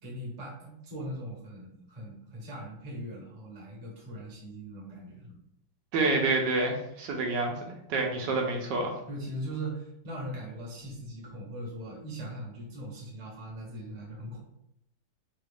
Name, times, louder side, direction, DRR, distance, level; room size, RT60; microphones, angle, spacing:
voice 1, 0.0-5.4 8.2-8.4 9.1-14.4, right 1 dB, 30° right, -3 dB, 0.8 m, -40 dB
voice 2, 5.9-7.6 7.9-9.0, right 3 dB, 75° right, 1 dB, 1.2 m, -27 dB
3.9 x 2.3 x 3.3 m, 0.78 s
omnidirectional pair, 2.1 m